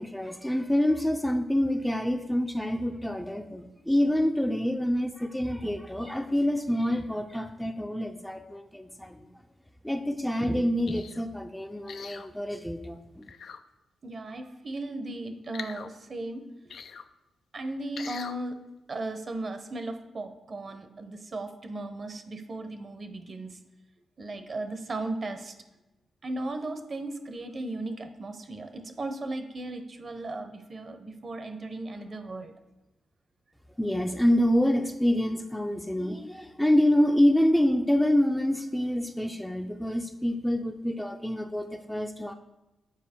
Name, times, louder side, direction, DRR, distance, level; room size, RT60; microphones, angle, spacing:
voice 1, 0.0-9.3 9.8-13.3 33.8-42.3, left 1 dB, 5° left, 6 dB, 0.5 m, -27 dB
sound 1, 10.9-11.2 11.9-12.3 13.2-13.6 15.5-15.9 16.7-17.0 18.0-18.4 19.0-19.1, left 6 dB, 70° left, 0.3 m, -42 dB
voice 2, 14.0-16.4 17.5-18.6 18.9-23.6 24.2-25.5 26.2-32.5, right 2 dB, 45° right, 9 dB, 0.8 m, -36 dB
7.3 x 4.5 x 4.3 m, 0.99 s
cardioid pair, 70°, 0 cm